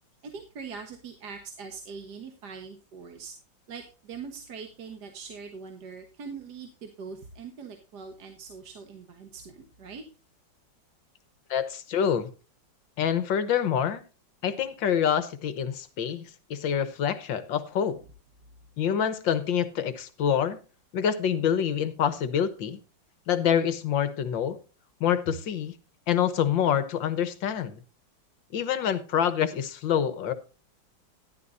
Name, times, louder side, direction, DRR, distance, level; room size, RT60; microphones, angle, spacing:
voice 1, 0.2-3.3 3.7-10.0, right 5 dB, 60° right, 5 dB, 1.8 m, -42 dB
voice 2, 11.5-12.3 13.0-14.0 14.4-18.0 18.8-20.6 20.9-22.8 23.3-24.6 25.0-25.7 26.1-27.8 28.5-30.3, left 8 dB, 75° left, 12 dB, 1.8 m, -26 dB
13.0 x 11.5 x 2.6 m, 0.34 s
omnidirectional pair, 2.1 m